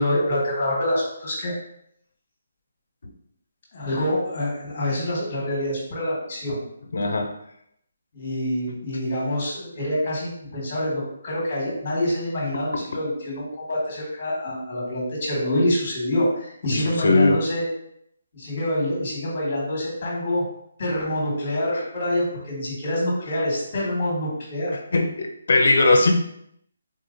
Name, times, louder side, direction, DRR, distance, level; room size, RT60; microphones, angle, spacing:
voice 1, 0.0-1.5 3.7-6.6 8.1-17.6 18.3-20.4 20.8-24.7, left 1 dB, 35° left, -4 dB, 1.5 m, -26 dB
voice 2, 6.9-7.3 16.7-17.4 21.7-21.8 24.9-26.1, left 2 dB, 65° left, 4 dB, 0.5 m, -19 dB
3.8 x 2.7 x 2.5 m, 0.74 s
hypercardioid pair, 165°, 0 cm